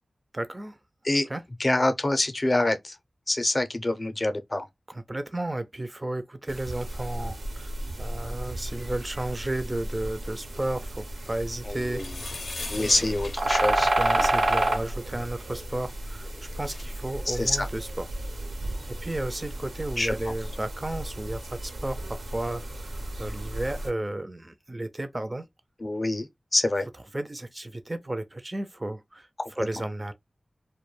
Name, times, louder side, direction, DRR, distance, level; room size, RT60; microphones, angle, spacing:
voice 1, 0.3-0.8 1.3-1.4 4.9-12.3 12.8-13.1 13.5-16.3 16.6-18.1 18.9-22.9 23.2-25.5 27.1-29.3 29.6-30.1, right 1 dB, 30° right, 0.3 m, -33 dB
voice 2, 1.6-3.0 3.3-4.7 11.7-12.1 12.7-13.9 17.3-17.7 20.0-20.3 25.8-26.9 29.4-29.5, left 2 dB, 40° left, 0.5 m, -26 dB
sound 1, 6.5-23.9, right 1 dB, 90° right, 0.7 m, -31 dB
sound 2, 11.9-14.5 16.2-16.3 16.4-16.8, left 3 dB, 85° left, 0.5 m, -40 dB
2.2 x 2.1 x 3.0 m
cardioid pair, 45°, 0 cm